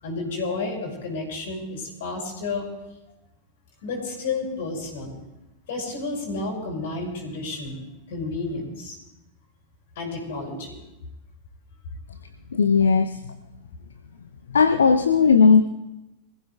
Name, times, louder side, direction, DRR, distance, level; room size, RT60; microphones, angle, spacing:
voice 1, 0.0-2.7 3.8-5.1 5.7-7.8 8.1-9.0 10.0-10.8, left 3 dB, 55° left, 0 dB, 6.0 m, -31 dB
voice 2, 12.5-13.3 14.5-15.6, left 5 dB, 70° left, 9 dB, 0.6 m, -17 dB
25.0 x 15.5 x 2.3 m, 0.97 s
figure-of-eight pair, 90°, 0 cm